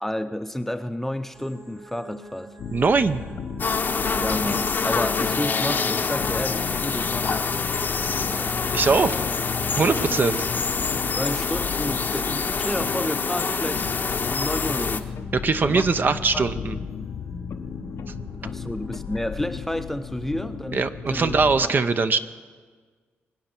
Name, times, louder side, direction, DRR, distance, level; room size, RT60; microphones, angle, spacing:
voice 1, 0.0-2.5 4.1-7.5 11.1-13.9 14.3-15.1 15.6-16.5 18.4-20.8 21.1-21.3 21.6-21.8, left 1 dB, 5° left, 9 dB, 0.6 m, -30 dB
sound 1, 1.3-19.2, right 1 dB, 60° right, 3.2 m, -44 dB
sound 2, 2.6-21.7, left 7 dB, 85° left, 0.8 m, -35 dB
voice 2, 2.7-3.2 8.7-9.2 9.8-10.4 15.3-16.8 20.7-22.2, right 4 dB, 45° right, 11 dB, 0.7 m, -21 dB
sound 3, 3.6-15.0, left 5 dB, 45° left, 0.8 m, -26 dB
23.5 x 8.8 x 6.0 m, 1.5 s
cardioid pair, 95°, 5 cm